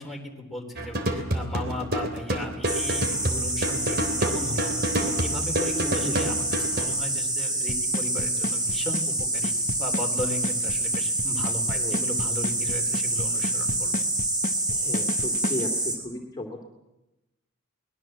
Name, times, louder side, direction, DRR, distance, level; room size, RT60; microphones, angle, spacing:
voice 1, 0.0-4.7 5.0-6.4 6.7-9.5 9.8-13.9, left 1 dB, ahead, 0 dB, 3.7 m, -36 dB
sound 1, 0.8-6.9, right 1 dB, 50° right, 3.4 m, -28 dB
sound 2, 2.6-16.0, right 2 dB, 20° right, 5.3 m, -27 dB
voice 2, 5.7-6.3 11.8-12.0 14.7-16.6, left 1 dB, 20° left, 1 dB, 2.8 m, -35 dB
Drum kit / Snare drum / Bass drum, 7.7-15.6, left 2 dB, 40° left, 1.0 m, -32 dB
23.5 x 20.5 x 7.7 m, 0.96 s
head